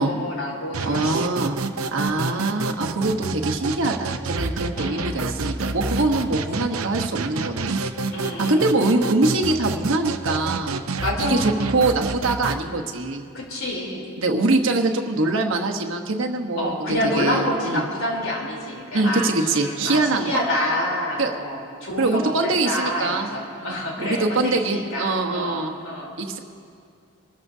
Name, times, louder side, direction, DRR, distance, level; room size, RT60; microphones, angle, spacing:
voice 1, 0.0-1.3 2.2-2.6 4.8-5.1 8.1-8.8 11.0-11.5 13.3-14.0 16.6-26.1, left 1 dB, 70° left, -3 dB, 3.6 m, -28 dB
sound 1, 0.7-12.5, right 3 dB, 80° right, 0.7 m, -28 dB
voice 2, 0.8-1.6 1.9-7.8 8.4-10.8 11.2-13.2 14.2-16.7 17.1-17.8 18.9-20.4 21.2-21.3 22.0-23.3 23.6-25.8 26.2-26.4, right 2 dB, 65° right, 2 dB, 1.2 m, -23 dB
26.0 x 14.0 x 2.8 m, 2.4 s
head